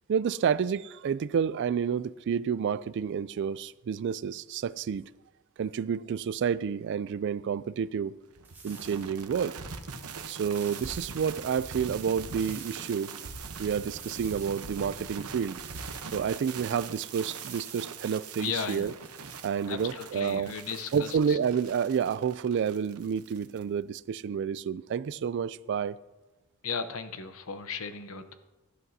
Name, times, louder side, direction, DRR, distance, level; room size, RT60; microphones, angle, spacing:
voice 1, 0.1-5.1 5.6-8.1 8.6-9.6 10.3-13.1 13.6-15.6 16.1-18.9 19.4-20.5 20.9-26.0, right 7 dB, 55° right, 0.3 m, -29 dB
sound 1, 8.3-23.6, right 5 dB, 80° right, 0.9 m, -42 dB
sound 2, 8.4-9.1 10.3-11.1 12.3-13.0 13.9-14.6 15.7-16.3 17.3-18.0 18.8-19.5, right 4 dB, 10° right, 1.5 m, -51 dB
voice 2, 18.4-18.9 19.7-21.4 26.6-28.4, left 6 dB, 65° left, 0.8 m, -36 dB
16.5 x 11.5 x 2.7 m
head